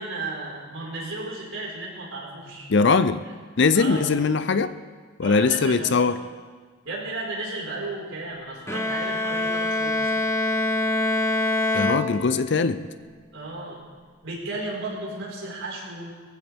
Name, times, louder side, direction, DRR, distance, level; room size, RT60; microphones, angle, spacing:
voice 1, 0.0-2.7 3.7-4.1 5.2-6.1 6.8-10.1 13.3-13.8 14.2-16.1, right 2 dB, 70° right, -4 dB, 4.8 m, -34 dB
voice 2, 2.7-3.2 3.6-4.7 5.2-6.2 11.7-12.8, left 4 dB, 55° left, 12 dB, 0.5 m, -21 dB
Bowed string instrument, 8.7-12.7, left 2 dB, 10° left, 0.8 m, -25 dB
21.5 x 15.0 x 3.5 m, 1.5 s
head